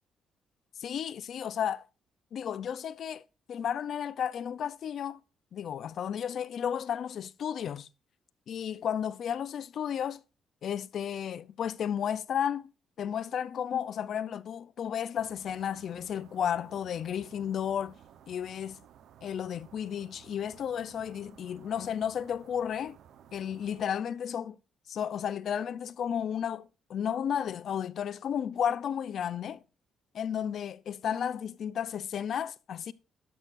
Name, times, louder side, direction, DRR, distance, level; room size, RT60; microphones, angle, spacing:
voice 1, 0.8-1.9 2.3-3.2 3.5-5.2 5.5-7.9 8.5-10.2 10.6-12.7 13.0-17.9 18.3-18.8 19.2-23.0 23.3-24.6 24.9-29.6 30.1-32.9, left 8 dB, 65° left, 0.6 m, -33 dB
sound 1, 15.2-23.8, right 9 dB, 75° right, 1.0 m, -56 dB
12.5 x 10.5 x 2.6 m
cardioid pair, 90°, 0 cm